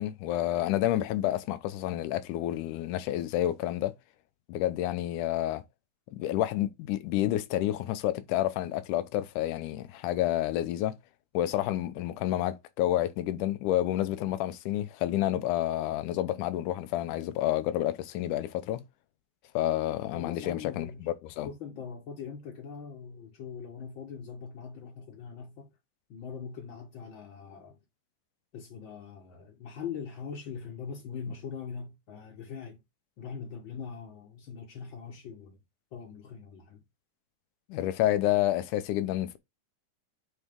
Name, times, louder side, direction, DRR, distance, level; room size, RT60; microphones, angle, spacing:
voice 1, 0.0-3.9 4.5-5.6 6.1-11.0 11.3-18.8 19.5-21.5 37.7-39.4, left 13 dB, 80° left, 2.2 m, -29 dB
voice 2, 20.1-21.1 21.4-25.7 26.1-27.8 28.5-32.8 33.2-35.6 35.9-36.8, left 6 dB, 50° left, 1.5 m, -42 dB
8.3 x 4.1 x 3.6 m
omnidirectional pair, 3.7 m